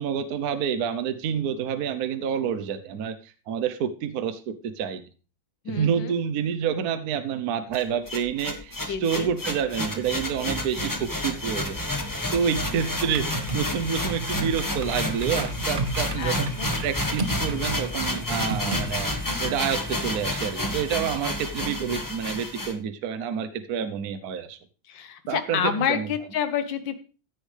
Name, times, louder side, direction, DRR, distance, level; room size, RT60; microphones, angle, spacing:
voice 1, 0.0-5.0 5.7-11.8 12.3-16.5 16.8-24.6 25.3-26.1, right 8 dB, 60° right, 11 dB, 1.3 m, -28 dB
voice 2, 5.7-6.2 8.9-9.3 16.2-16.7 24.9-27.0, left 8 dB, 90° left, 9 dB, 1.8 m, -28 dB
sound 1, 7.7-22.7, left 1 dB, 10° left, 1.2 m, -30 dB
sound 2, 10.8-18.8, right 2 dB, 30° right, 1.1 m, -35 dB
14.5 x 9.8 x 3.4 m, 0.35 s
omnidirectional pair, 2.0 m